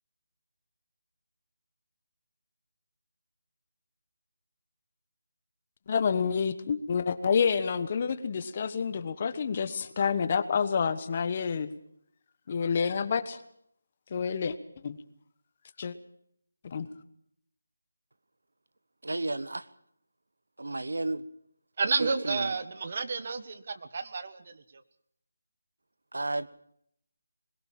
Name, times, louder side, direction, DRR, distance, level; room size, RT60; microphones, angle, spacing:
voice 1, 5.9-11.7 12.5-13.4 14.1-14.6 14.8-15.0 15.8-15.9 16.6-16.9, left 6 dB, 35° left, 13 dB, 1.2 m, -28 dB
voice 2, 19.0-19.7 20.6-21.2 22.0-22.6 26.1-26.5, right 2 dB, 80° right, 15 dB, 1.2 m, -32 dB
voice 3, 21.8-24.8, right 4 dB, 40° right, 12 dB, 1.5 m, -31 dB
21.5 x 17.0 x 7.5 m, 0.70 s
figure-of-eight pair, 165°, 0 cm